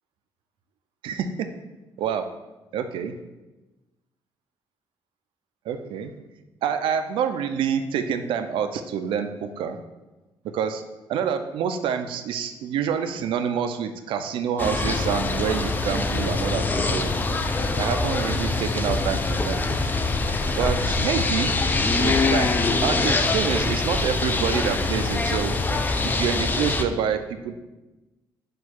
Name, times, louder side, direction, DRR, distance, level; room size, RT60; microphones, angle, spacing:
voice 1, 1.0-1.5 2.0-2.3 2.7-3.1 5.7-6.1 6.6-9.8 10.4-10.8 11.1-17.1 17.8-19.9 20.6-21.6 22.0-22.5 22.8-25.6 26.0-27.5, right 7 dB, 80° right, 8 dB, 0.3 m, -27 dB
sound 1, 14.6-26.8, left 3 dB, 20° left, 0.3 m, -24 dB
4.4 x 2.3 x 4.3 m, 1.1 s
cardioid pair, 100°, 8 cm